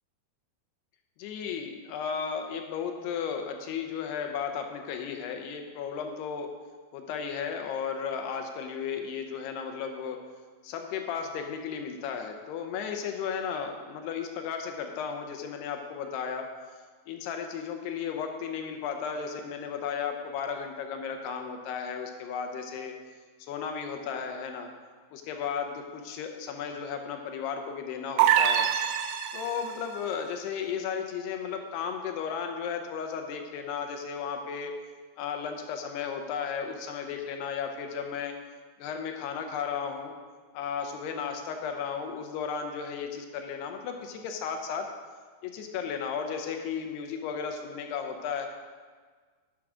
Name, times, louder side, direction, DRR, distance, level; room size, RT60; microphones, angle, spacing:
voice 1, 1.2-6.5 6.9-10.2 10.6-16.5 17.1-22.9 23.4-24.7 25.1-28.7 29.3-34.7 35.2-38.3 38.8-40.1 40.5-44.9 45.4-48.5, left 6 dB, 80° left, 4 dB, 2.8 m, -34 dB
sound 1, 28.2-29.8, right 10 dB, 85° right, 2.1 m, -24 dB
11.0 x 7.5 x 4.9 m, 1.5 s
omnidirectional pair, 4.7 m